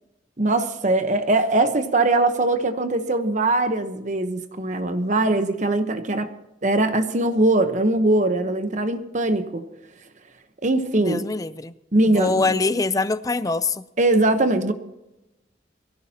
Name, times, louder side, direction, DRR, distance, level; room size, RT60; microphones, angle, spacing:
voice 1, 0.4-6.3 6.6-9.7 10.6-11.3 11.9-12.6 14.0-14.7, right 2 dB, 45° right, 1.0 m, -21 dB
voice 2, 11.0-11.7 12.0-13.8, left 3 dB, 20° left, 0.5 m, -24 dB
23.0 x 16.0 x 2.9 m
head